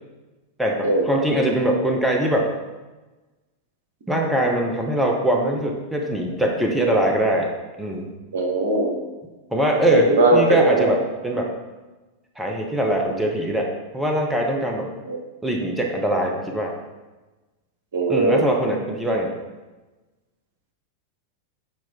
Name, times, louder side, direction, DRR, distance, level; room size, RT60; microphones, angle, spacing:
voice 1, 0.6-2.5 4.1-7.5 7.8-8.1 9.5-11.5 12.4-14.9 15.4-16.7 18.1-19.3, right 1 dB, 5° right, 1 dB, 0.8 m, -22 dB
voice 2, 8.3-8.9 9.9-10.9 15.1-15.2 17.9-18.5, right 2 dB, 60° right, 1 dB, 1.1 m, -19 dB
7.5 x 4.4 x 3.6 m, 1.2 s
figure-of-eight pair, 90°, 0 cm